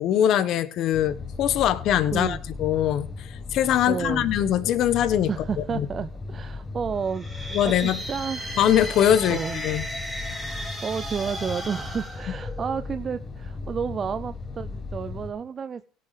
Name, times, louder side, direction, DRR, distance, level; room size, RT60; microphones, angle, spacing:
voice 1, 0.0-3.1 3.5-5.3 5.6-5.9 7.5-8.0 8.6-9.9, left 10 dB, 55° left, 1.3 m, -22 dB
sound 1, 0.9-15.3, left 3 dB, 20° left, 1.4 m, -37 dB
voice 2, 3.9-4.3 5.3-8.5 9.3-9.6 10.8-15.8, right 6 dB, 30° right, 0.6 m, -31 dB
sound 2, 7.0-13.0, equal, ahead, 4.1 m, -35 dB
17.0 x 7.0 x 4.9 m
supercardioid pair, 110°, 0 cm